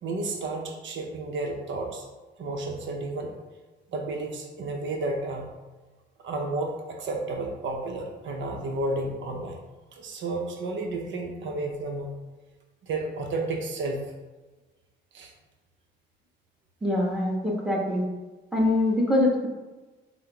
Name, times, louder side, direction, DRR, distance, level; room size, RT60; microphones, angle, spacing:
voice 1, 0.0-2.1 2.4-3.4 3.9-5.5 6.2-9.6 9.9-12.1 12.8-14.1 15.1-15.3, right 2 dB, 70° right, 2 dB, 0.7 m, -32 dB
voice 2, 16.8-18.0 18.5-19.5, left 1 dB, 5° right, -3 dB, 1.2 m, -24 dB
5.5 x 2.0 x 4.5 m, 1.2 s
cardioid pair, 90°, 20 cm